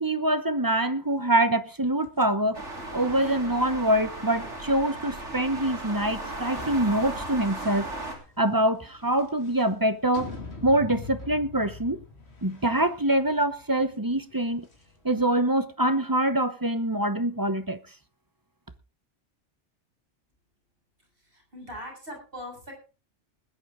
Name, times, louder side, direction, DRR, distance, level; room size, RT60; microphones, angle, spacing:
voice 1, 0.0-2.6 2.9-7.9 8.4-10.3 10.6-12.0 12.4-14.7 15.0-17.8, right 1 dB, 20° right, 0.9 m, -25 dB
sound 1, 2.0-15.3, left 4 dB, 65° left, 2.6 m, -45 dB
sound 2, 2.5-8.2, right 2 dB, 75° right, 3.9 m, -36 dB
voice 2, 21.2-22.7, equal, 50° right, 7.3 m, -41 dB
20.0 x 10.5 x 3.7 m
omnidirectional pair, 1.2 m